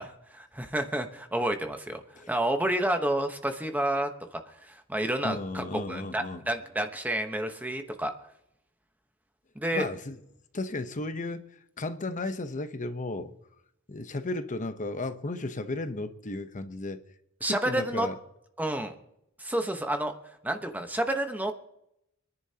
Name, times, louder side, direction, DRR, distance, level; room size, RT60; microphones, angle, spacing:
voice 1, 0.0-2.0 2.3-8.1 9.5-9.9 17.4-18.1 18.6-18.9 19.4-20.1 20.4-21.6, right 1 dB, 10° right, 1.1 m, -30 dB
voice 2, 5.2-6.4 9.7-10.2 10.5-11.5 11.8-13.3 13.9-17.0 17.4-18.1, left 2 dB, 35° left, 0.9 m, -34 dB
28.0 x 11.0 x 2.9 m
head